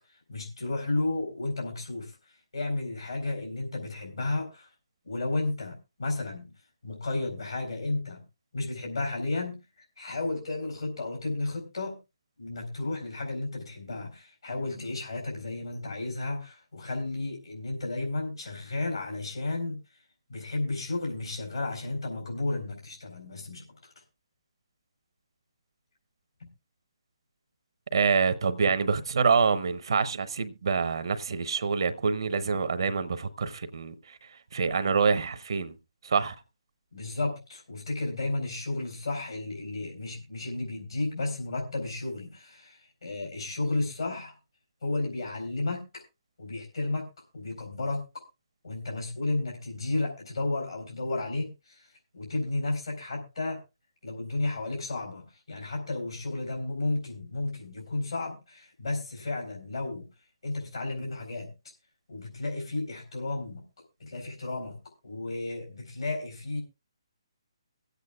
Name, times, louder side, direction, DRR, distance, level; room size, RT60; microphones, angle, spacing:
voice 1, 0.1-4.7 5.0-6.5 6.8-8.2 8.5-12.0 12.4-20.0 20.3-23.9 36.9-44.3 44.8-46.0 46.4-47.1 47.3-48.1 48.6-53.6 54.0-60.1 60.4-61.5 62.1-63.6 64.0-64.8 65.0-66.6, left 2 dB, 75° left, 4.2 m, -33 dB
voice 2, 27.9-35.8 36.0-36.4, right 5 dB, 65° right, 0.9 m, -26 dB
24.0 x 8.3 x 2.3 m
figure-of-eight pair, 145°, 3 cm